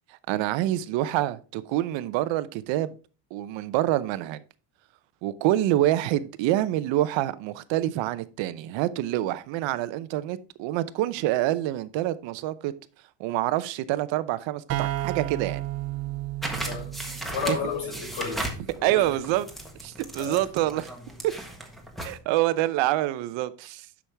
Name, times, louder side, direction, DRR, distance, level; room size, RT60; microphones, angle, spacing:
voice 1, 0.3-2.9 3.3-4.4 5.2-12.7 13.2-15.6 18.8-19.4 19.8-20.9 21.2-21.3 22.0-23.9, right 14 dB, 70° right, 0.8 m, -26 dB
sound 1, 14.7-18.3, right 15 dB, 35° right, 0.5 m, -33 dB
sound 2, 16.4-22.2, right 1 dB, ahead, 1.4 m, -36 dB
voice 2, 17.3-19.1 20.2-20.4, left 5 dB, 70° left, 5.5 m, -32 dB
10.0 x 6.2 x 3.4 m
cardioid pair, 145°, 46 cm